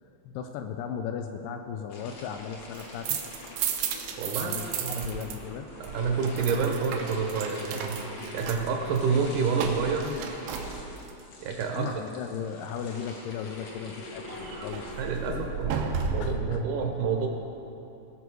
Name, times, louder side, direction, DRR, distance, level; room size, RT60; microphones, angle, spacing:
voice 1, 0.3-3.2 4.4-5.7 10.0-10.3 11.8-15.0 15.3-15.7 16.2-16.6, left 7 dB, 80° left, 6 dB, 2.0 m, -37 dB
sound 1, 1.9-15.2, left 2 dB, 55° left, 2.1 m, -43 dB
sound 2, 2.6-5.4 5.6-11.2 14.3-16.5, right 6 dB, 90° right, 2.7 m, -34 dB
voice 2, 4.2-5.1 5.8-8.0 8.3-10.0 11.4-11.9 15.0-17.3, right 5 dB, 70° right, 2 dB, 2.1 m, -28 dB
18.5 x 6.4 x 4.7 m, 3.0 s
omnidirectional pair, 4.1 m